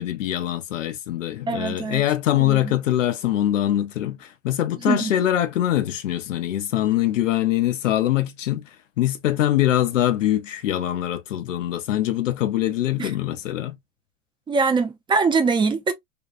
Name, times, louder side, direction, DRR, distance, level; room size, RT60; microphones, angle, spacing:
voice 1, 0.0-8.7 9.0-13.8, left 13 dB, 75° left, 0.6 m, -23 dB
voice 2, 1.5-2.0 2.4-2.7 4.8-5.1 13.0-13.1 14.5-15.9, right 4 dB, 15° right, 0.5 m, -22 dB
2.6 x 2.3 x 2.4 m
hypercardioid pair, 100°, 38 cm